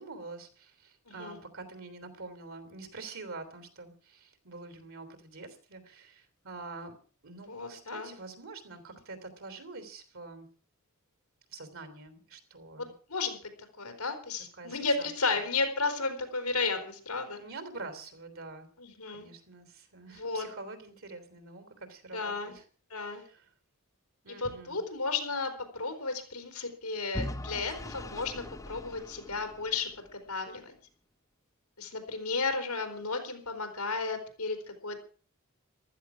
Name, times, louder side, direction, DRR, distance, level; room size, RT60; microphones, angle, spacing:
voice 1, 0.0-7.0 7.2-10.5 11.5-12.9 14.6-15.1 17.4-18.7 19.1-22.6 22.9-23.4 24.2-24.8, right 3 dB, 65° right, 10 dB, 3.4 m, -46 dB
voice 2, 1.1-1.4 7.5-8.1 12.8-13.4 13.8-17.4 18.8-19.3 20.0-20.5 22.1-22.5 22.9-23.2 24.4-29.9 30.3-30.7 31.8-35.0, left 4 dB, 90° left, 6 dB, 4.1 m, -33 dB
Vehicle / Engine, 27.1-30.2, left 1 dB, 15° left, 0.6 m, -40 dB
15.0 x 13.0 x 6.1 m, 0.42 s
head